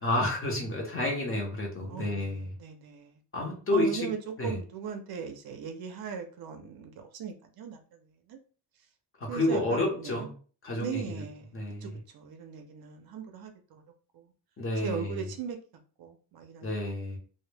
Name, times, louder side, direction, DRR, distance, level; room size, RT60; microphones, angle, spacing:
voice 1, 0.0-2.5 3.3-4.1 4.4-4.6 9.2-10.3 10.6-11.2 11.5-12.0 14.6-15.2 16.6-17.2, left 1 dB, 30° left, 0 dB, 0.7 m, -30 dB
voice 2, 1.9-3.2 3.7-8.4 9.3-10.3 10.8-11.6 11.8-13.8 14.1-14.3 14.8-15.6 16.0-16.7, right 7 dB, 60° right, 5 dB, 0.5 m, -39 dB
2.1 x 2.0 x 3.1 m, 0.40 s
wide cardioid pair, 165°, 42 cm